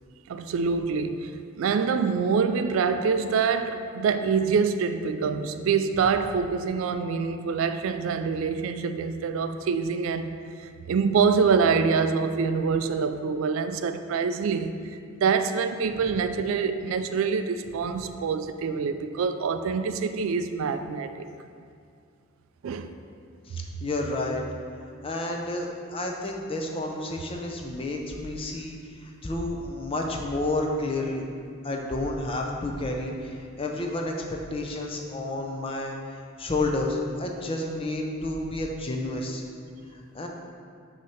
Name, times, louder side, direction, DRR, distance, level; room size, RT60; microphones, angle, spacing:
voice 1, 0.3-14.8 15.1-21.3 22.6-22.9, right 5 dB, 75° right, 9 dB, 0.3 m, -25 dB
voice 2, 23.5-24.4 25.0-31.3 31.6-36.0 36.4-39.4 39.9-40.3, left 2 dB, 25° left, 1 dB, 0.5 m, -30 dB
6.1 x 2.9 x 5.6 m, 2.3 s
head